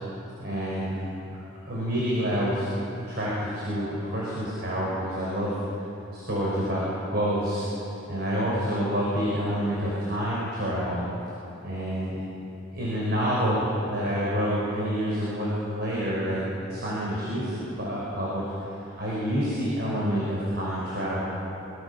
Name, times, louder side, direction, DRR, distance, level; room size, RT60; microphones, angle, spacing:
voice 1, 0.4-1.4 1.6-2.7 3.1-5.6 6.1-7.7 8.1-11.0 11.6-12.2 12.7-16.4 16.7-21.2, equal, 50° right, -6 dB, 5.9 m, -28 dB
25.0 x 23.5 x 7.2 m, 2.9 s
head